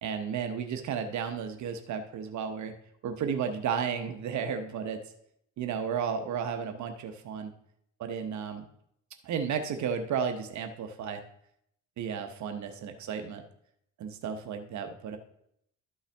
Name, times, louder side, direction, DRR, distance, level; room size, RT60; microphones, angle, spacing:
voice 1, 0.0-2.7 3.0-5.0 5.6-7.5 8.0-8.7 9.2-11.2 12.0-13.4 14.0-15.2, right 7 dB, 70° right, 7 dB, 0.8 m, -33 dB
12.5 x 5.6 x 3.4 m, 0.73 s
cardioid pair, 90°, 30 cm